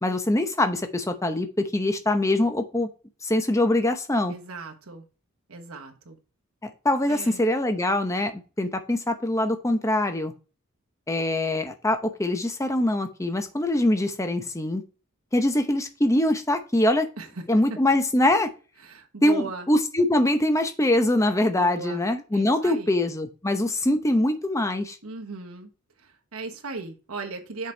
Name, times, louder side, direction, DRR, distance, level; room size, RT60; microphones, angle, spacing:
voice 1, 0.0-2.9 3.2-4.3 6.6-10.3 11.1-14.8 15.3-17.1 17.5-18.5 19.2-25.0, left 1 dB, 15° left, 0.7 m, -23 dB
voice 2, 4.3-5.0 5.5-6.2 7.1-7.4 17.2-17.8 18.8-19.7 21.5-22.0 22.3-22.9 25.0-25.7 26.0-27.7, right 4 dB, 80° right, 1.2 m, -37 dB
6.5 x 5.1 x 4.3 m
head